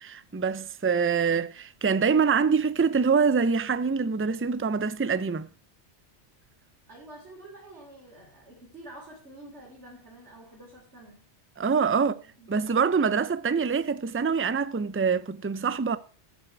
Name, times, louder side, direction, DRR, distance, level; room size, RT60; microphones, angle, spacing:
voice 1, 0.0-5.5 11.6-12.1 12.5-16.0, right 5 dB, 20° right, 0.3 m, -25 dB
voice 2, 6.9-11.2 11.9-12.7, right 1 dB, 70° right, 3.7 m, -48 dB
13.0 x 8.1 x 4.6 m
omnidirectional pair, 1.2 m